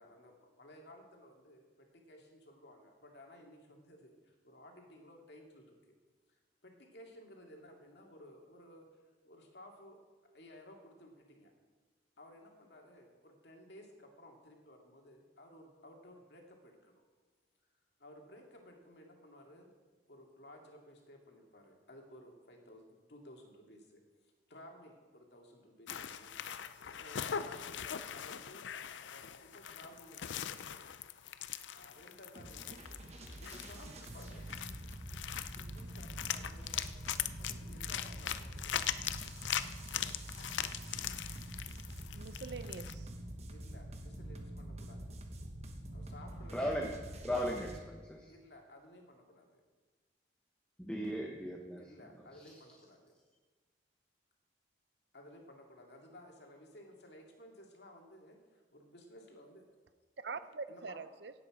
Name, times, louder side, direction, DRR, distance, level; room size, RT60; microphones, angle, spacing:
voice 1, 0.0-5.8 6.3-10.0 10.3-11.5 12.2-17.0 18.0-19.7 20.1-24.0 24.5-26.3 26.8-28.6 29.1-30.9 31.7-34.5 35.6-39.0 43.5-45.0 45.9-46.9 48.3-49.6 51.8-53.1 55.1-59.6 60.7-61.0, left 1 dB, 65° left, 1 dB, 2.3 m, -56 dB
sound 1, 25.9-42.9, left 9 dB, 85° left, 0.5 m, -41 dB
sound 2, 32.4-47.8, right 1 dB, 35° right, 1.3 m, -46 dB
voice 2, 42.1-43.1 60.2-61.3, right 4 dB, 65° right, 13 dB, 0.6 m, -44 dB
voice 3, 46.5-46.9 47.2-48.3 50.8-51.8, equal, 5° left, -1 dB, 1.0 m, -36 dB
16.5 x 8.3 x 4.9 m, 1.4 s
head